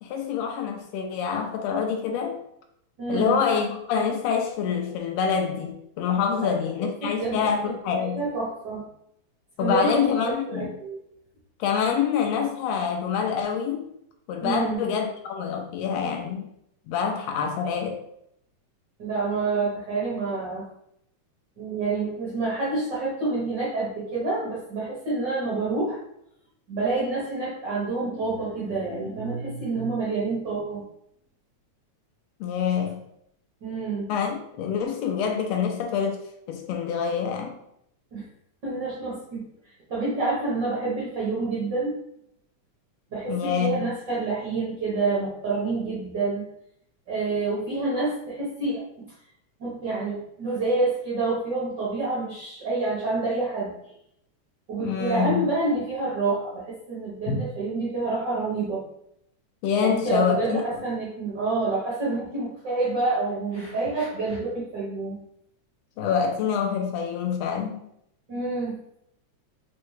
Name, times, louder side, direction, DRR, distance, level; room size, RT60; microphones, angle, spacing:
voice 1, 0.0-2.4 3.1-8.2 9.6-10.7 11.6-13.8 14.3-16.5 16.9-18.0 32.4-33.0 34.1-36.2 36.5-37.6 43.3-43.9 54.8-55.5 57.3-57.4 59.6-60.6 66.0-67.8, left 7 dB, 85° left, 3 dB, 1.5 m, -26 dB
voice 2, 3.0-3.4 6.4-6.5 6.8-7.5 8.0-8.8 9.6-11.0 14.4-14.8 19.0-20.6 21.6-26.0 26.7-30.8 33.6-34.1 38.1-38.2 38.6-39.4 39.9-41.9 43.1-46.4 47.1-49.1 49.6-53.9 54.7-58.8 59.8-65.2 68.3-68.8, right 3 dB, 60° right, -7 dB, 1.1 m, -28 dB
4.2 x 3.6 x 3.1 m, 0.75 s
omnidirectional pair, 3.5 m